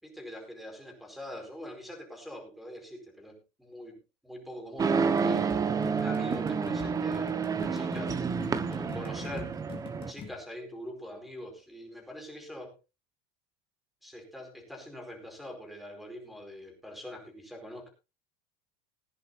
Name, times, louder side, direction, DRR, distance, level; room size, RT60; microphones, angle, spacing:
voice 1, 0.0-4.0 4.2-5.5 5.9-8.2 8.7-9.6 10.1-12.8 14.0-17.9, equal, ahead, 4 dB, 4.7 m, -43 dB
sound 1, 4.8-10.1, right 5 dB, 20° right, 1.2 m, -29 dB
sound 2, 5.2-10.3, left 7 dB, 35° left, 2.8 m, -45 dB
20.5 x 10.5 x 2.7 m, 0.27 s
supercardioid pair, 125°, 16 cm